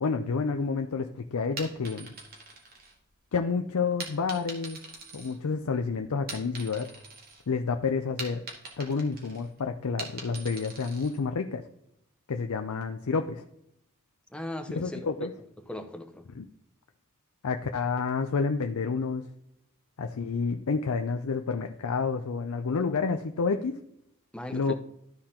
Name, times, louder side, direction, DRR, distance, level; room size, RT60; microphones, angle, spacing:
voice 1, 0.0-2.1 3.3-4.8 5.1-6.9 7.5-8.4 8.8-11.6 12.3-13.4 14.7-15.3 16.4-16.5 17.4-19.2 20.0-23.8 24.5-24.7, left 4 dB, 75° left, 6 dB, 0.5 m, -29 dB
sound 1, 1.6-3.4 4.0-5.8 6.1-7.4 7.8-11.2, right 3 dB, 45° right, 1.9 m, -43 dB
voice 2, 14.3-15.0 15.6-16.2 24.3-24.7, left 1 dB, 5° left, 6 dB, 0.7 m, -38 dB
13.0 x 4.4 x 3.7 m, 0.76 s
head